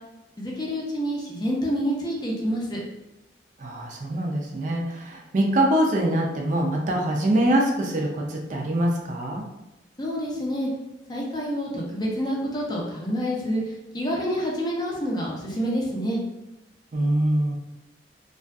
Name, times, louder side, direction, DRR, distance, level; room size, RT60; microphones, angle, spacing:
voice 1, 0.4-2.8 10.0-10.7 11.1-13.6 13.9-16.2, equal, 25° left, -3 dB, 0.5 m, -27 dB
voice 2, 3.6-9.4 16.9-17.6, right 1 dB, 45° right, 0 dB, 0.4 m, -24 dB
2.6 x 2.3 x 2.2 m, 0.95 s
head